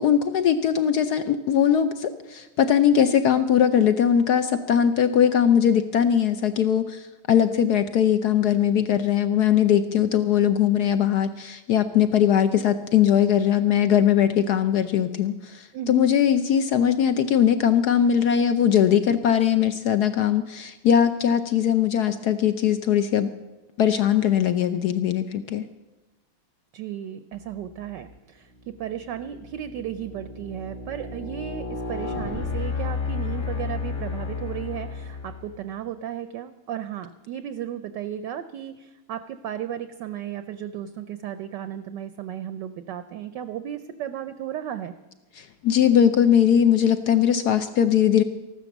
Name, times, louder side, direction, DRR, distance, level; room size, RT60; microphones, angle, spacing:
voice 1, 0.0-23.3 23.8-25.6 45.4-48.2, left 9 dB, 70° left, 10 dB, 0.9 m, -20 dB
voice 2, 15.7-16.1 26.7-44.9, right 10 dB, 70° right, 11 dB, 1.1 m, -34 dB
sound 1, 27.8-28.2 28.8-35.6, left 4 dB, 35° left, 1.7 m, -32 dB
14.0 x 12.0 x 7.1 m, 1.1 s
omnidirectional pair, 2.4 m